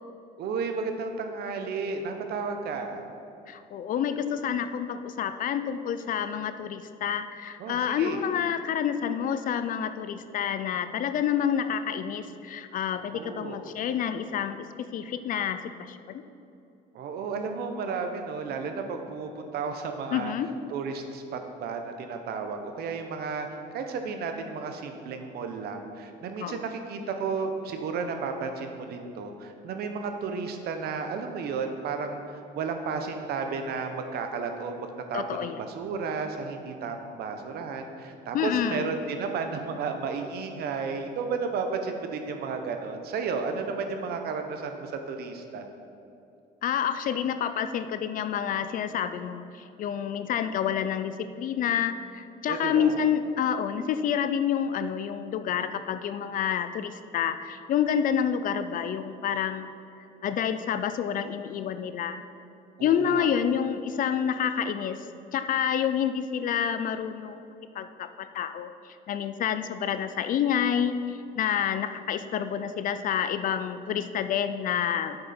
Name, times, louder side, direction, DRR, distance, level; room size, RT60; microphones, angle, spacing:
voice 1, 0.4-3.1 7.6-8.2 13.1-13.7 16.9-20.3 20.7-23.5 23.7-45.7 52.5-53.0 62.8-63.4, right 5 dB, 70° right, 5 dB, 0.9 m, -33 dB
voice 2, 3.5-16.2 20.1-20.5 26.4-26.6 35.1-35.6 38.3-38.9 46.6-59.7 60.2-62.2 62.8-65.0 65.3-67.4 67.7-75.2, left 8 dB, 55° left, 11 dB, 0.4 m, -28 dB
8.5 x 6.7 x 4.3 m, 2.7 s
cardioid pair, 110°, 17 cm